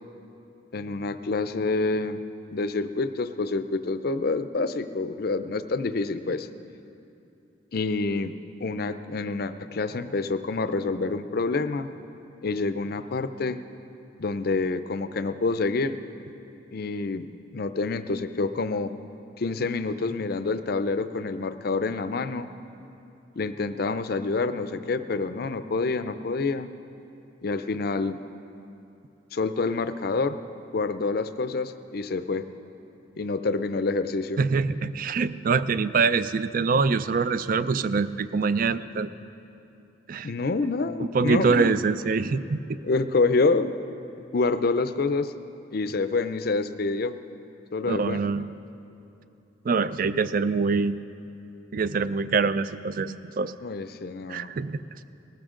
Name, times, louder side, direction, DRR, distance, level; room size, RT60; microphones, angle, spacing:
voice 1, 0.7-2.2 2.5-6.5 7.7-8.3 8.6-11.9 12.4-13.6 14.2-16.0 16.7-17.2 17.5-18.9 19.4-22.5 23.4-26.7 27.4-28.2 29.3-30.4 30.7-32.5 33.2-34.4 40.2-41.7 42.8-43.7 44.3-45.3 45.7-47.2 47.7-48.2 53.6-54.5, left 3 dB, 50° left, 11 dB, 0.5 m, -27 dB
voice 2, 34.4-39.1 40.1-40.3 41.0-42.8 47.9-48.5 49.7-51.0 51.7-53.5 54.3-54.8, right 4 dB, 45° right, 14 dB, 0.4 m, -24 dB
19.5 x 14.0 x 3.8 m, 2.7 s
head